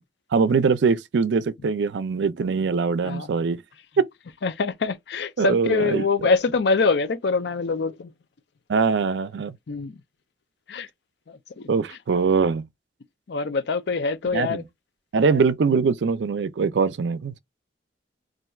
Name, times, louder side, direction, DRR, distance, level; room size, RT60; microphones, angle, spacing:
voice 1, 0.3-3.6 4.0-4.1 5.4-6.3 8.7-9.6 11.7-12.7 14.3-14.6 15.1-17.4, right 5 dB, 70° right, 0.4 m, -22 dB
voice 2, 4.4-8.1 9.7-9.9 10.7-10.9 11.3-11.7 13.3-14.6, left 4 dB, 65° left, 0.5 m, -24 dB
4.2 x 2.5 x 2.3 m
head